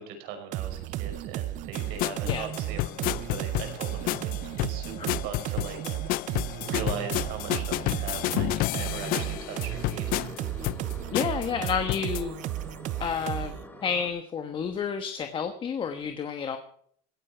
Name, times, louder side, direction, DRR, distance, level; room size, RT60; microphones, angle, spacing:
voice 1, 0.0-5.8 6.0-6.1 6.6-10.2, right 7 dB, 75° right, 6 dB, 5.3 m, -40 dB
sound 1, 0.5-13.7, right 14 dB, 50° right, 0.7 m, -34 dB
sound 2, 1.7-12.2, left 17 dB, 60° left, 0.6 m, -31 dB
sound 3, 8.7-14.1, left 2 dB, 10° left, 2.0 m, -46 dB
voice 2, 11.1-12.4 13.0-16.6, left 7 dB, 30° left, 7 dB, 1.3 m, -30 dB
17.0 x 14.0 x 4.6 m, 0.62 s
cardioid pair, 145°, 17 cm